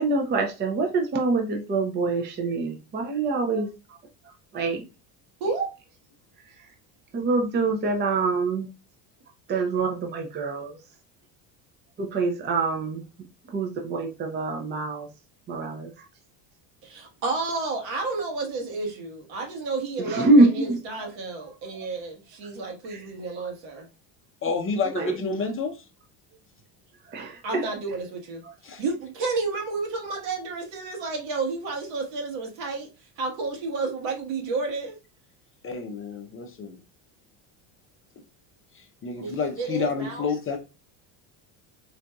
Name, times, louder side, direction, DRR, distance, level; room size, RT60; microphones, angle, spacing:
voice 1, 0.0-3.7 4.5-4.8 7.1-8.7 9.5-10.8 12.0-13.0 13.5-15.1 15.5-15.9 20.0-20.8 22.9-23.0 23.4-23.5 24.9-25.1 27.1-27.6, right 3 dB, 25° right, 0.5 m, -25 dB
voice 2, 5.4-5.7 16.8-23.9 27.4-28.4 28.8-32.9 33.2-34.9 39.1-40.3, right 3 dB, 65° right, 1.4 m, -31 dB
voice 3, 24.4-25.8 28.6-28.8 35.6-36.8 38.7-40.6, left 4 dB, 30° left, 0.5 m, -29 dB
3.9 x 2.5 x 2.2 m
supercardioid pair, 115°, 46 cm